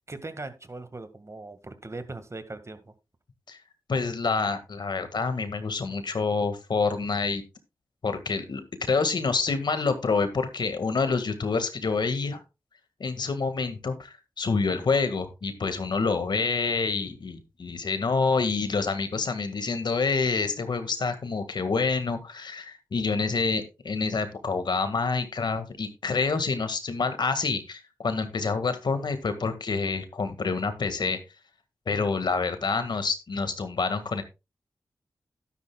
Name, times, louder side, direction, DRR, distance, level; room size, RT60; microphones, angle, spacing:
voice 1, 0.1-2.9, right 2 dB, 35° right, 10 dB, 1.8 m, -40 dB
voice 2, 3.9-7.4 8.0-12.4 13.0-31.2 31.9-34.2, left 4 dB, 70° left, 9 dB, 1.9 m, -27 dB
12.0 x 10.5 x 2.3 m, 0.26 s
cardioid pair, 40°, 8 cm